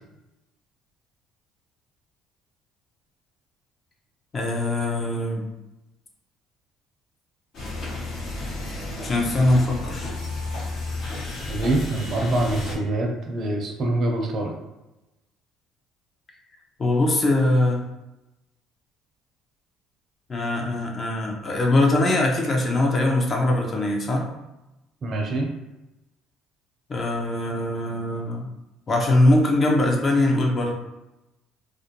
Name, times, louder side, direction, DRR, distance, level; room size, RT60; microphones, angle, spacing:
voice 1, 4.3-5.4 9.0-10.1 16.8-17.8 20.3-24.3 26.9-28.5 28.9-30.7, left 1 dB, 35° left, 0 dB, 0.6 m, -22 dB
sound 1, 7.5-12.7, left 2 dB, 60° left, 0.9 m, -32 dB
voice 2, 11.5-14.5 25.0-25.5, right 2 dB, 50° right, 1 dB, 0.6 m, -25 dB
2.4 x 2.1 x 2.9 m, 0.97 s
supercardioid pair, 85°, 0 cm